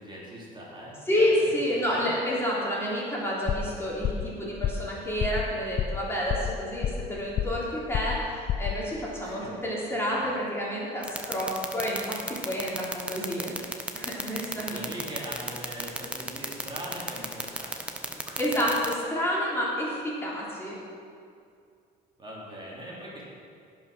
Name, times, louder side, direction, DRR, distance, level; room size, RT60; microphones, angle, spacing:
voice 1, 0.0-1.5 1.9-2.1 9.2-9.5 10.1-10.3 14.5-18.4 22.2-23.2, right 1 dB, 30° right, -5 dB, 3.2 m, -41 dB
voice 2, 1.1-13.5 13.9-14.8 18.4-20.8, equal, 15° left, -6 dB, 3.2 m, -29 dB
sound 1, 3.5-3.8 4.0-4.3 4.6-4.9 5.2-5.5 5.8-6.0 6.3-7.1 7.4-7.7 7.9-8.2 8.5-8.8, left 10 dB, 45° left, 0.5 m, -28 dB
sound 2, 11.0-18.9, right 1 dB, 5° right, 1.0 m, -32 dB
16.5 x 5.8 x 6.2 m, 2.3 s
cardioid pair, 110°, 17 cm